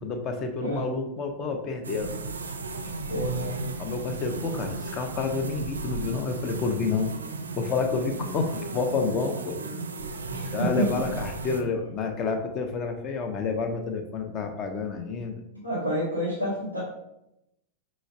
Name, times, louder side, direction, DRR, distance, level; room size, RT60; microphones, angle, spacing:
voice 1, 0.0-2.1 3.8-7.1 7.6-9.6 10.4-15.4, left 4 dB, 35° left, 5 dB, 0.6 m, -29 dB
sound 1, 1.8-11.6, right 3 dB, 70° right, 0.4 m, -35 dB
voice 2, 3.1-3.6 10.3-11.0 15.6-16.8, right 1 dB, 90° left, -9 dB, 1.3 m, -28 dB
5.1 x 3.1 x 2.4 m, 0.83 s
figure-of-eight pair, 90°, 0 cm